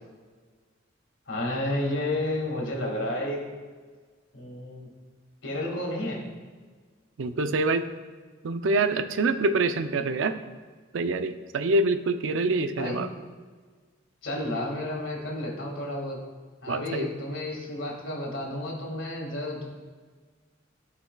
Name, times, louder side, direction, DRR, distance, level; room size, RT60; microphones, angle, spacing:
voice 1, 1.3-3.4 4.3-4.9 5.4-6.2 12.5-13.0 14.2-16.2 16.6-19.7, left 1 dB, 80° left, -1 dB, 1.9 m, -31 dB
voice 2, 7.2-7.9 8.4-10.4 10.9-13.1 16.7-17.1, right 3 dB, 90° right, 9 dB, 0.5 m, -25 dB
13.5 x 4.8 x 2.3 m, 1.5 s
head